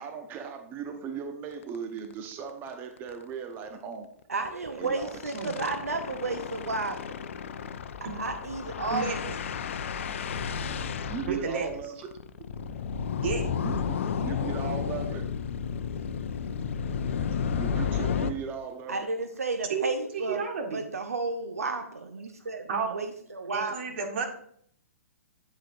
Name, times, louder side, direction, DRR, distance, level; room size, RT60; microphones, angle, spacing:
voice 1, 0.0-4.1 4.8-5.2 5.6-5.7 11.1-12.1 13.6-13.7 14.2-15.2 17.5-19.1, right 6 dB, 25° right, 5 dB, 0.8 m, -37 dB
sound 1, 1.6-1.8 2.1-2.2 2.5-2.7 3.0-3.1 4.4-18.3, left 6 dB, 55° left, 0.6 m, -32 dB
voice 2, 4.3-7.2 8.1-9.3 18.9-20.4 20.7-23.8, right 3 dB, 80° right, 6 dB, 0.7 m, -32 dB
voice 3, 11.3-11.7 13.2-13.5 19.7-19.9 20.1-20.8 22.7-23.0 23.5-24.3, right 5 dB, 55° right, 3 dB, 1.6 m, -31 dB
8.5 x 7.6 x 2.6 m, 0.64 s
figure-of-eight pair, 120°, 8 cm